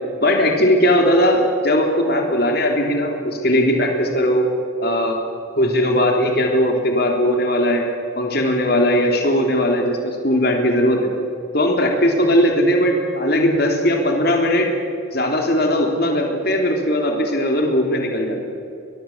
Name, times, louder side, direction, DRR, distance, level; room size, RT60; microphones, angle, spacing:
voice 1, 0.2-4.5 4.8-5.2 5.6-7.8 8.1-11.1 11.5-14.7 15.1-18.6, equal, 50° left, 2 dB, 3.4 m, -18 dB
22.5 x 22.0 x 7.3 m, 2.5 s
head